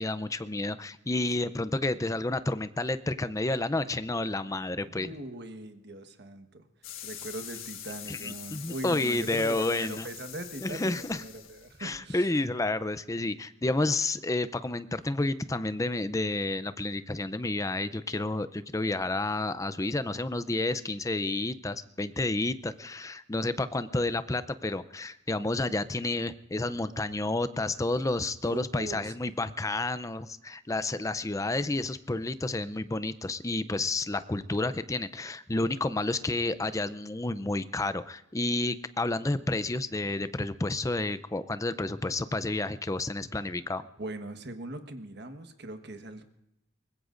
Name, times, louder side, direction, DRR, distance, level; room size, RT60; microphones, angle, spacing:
voice 1, 0.0-5.1 8.1-10.1 10.6-11.2 11.8-43.8, left 2 dB, 15° left, 13 dB, 0.5 m, -30 dB
voice 2, 4.8-6.7 7.0-12.3 28.5-29.1 43.8-46.2, right 1 dB, 55° right, 7 dB, 1.4 m, -41 dB
sound 1, 6.8-12.0, left 10 dB, 85° left, 1.4 m, -44 dB
24.0 x 20.5 x 2.6 m, 0.85 s
head